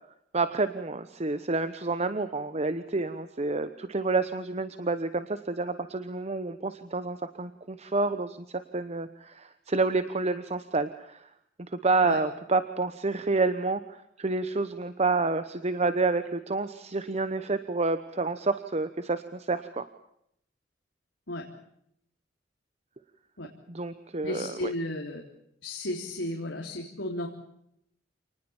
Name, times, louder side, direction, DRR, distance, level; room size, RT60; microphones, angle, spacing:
voice 1, 0.3-11.3 11.7-19.8 23.7-24.7, right 3 dB, 35° right, 12 dB, 1.0 m, -29 dB
voice 2, 24.2-25.2 25.6-27.3, left 1 dB, 80° left, 0 dB, 3.5 m, -33 dB
28.0 x 20.0 x 7.2 m, 0.75 s
head